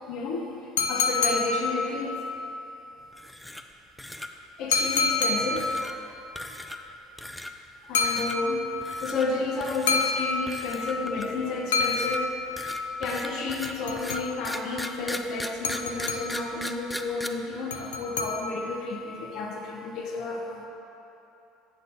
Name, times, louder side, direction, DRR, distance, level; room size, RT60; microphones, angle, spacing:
voice 1, 0.1-0.5 0.8-2.2 4.6-6.0 7.9-8.7 9.0-12.3 13.0-20.7, left 3 dB, 60° left, 0 dB, 0.7 m, -31 dB
sound 1, 0.8-2.2 4.7-5.9 7.9-8.8 9.9-10.9 11.7-12.7 13.6-14.6 15.6-16.6 17.7-18.8, left 4 dB, 90° left, 0.4 m, -28 dB
sound 2, 3.1-3.7 4.0-4.3 4.7-5.2 5.6-5.9 6.4-6.9 7.2-7.5 8.0-8.4 8.8-9.3 9.6-10.1 10.5-11.4 11.8-17.3, left 1 dB, 10° left, 0.4 m, -38 dB
6.8 x 4.1 x 5.3 m, 3.0 s
hypercardioid pair, 75°, 0 cm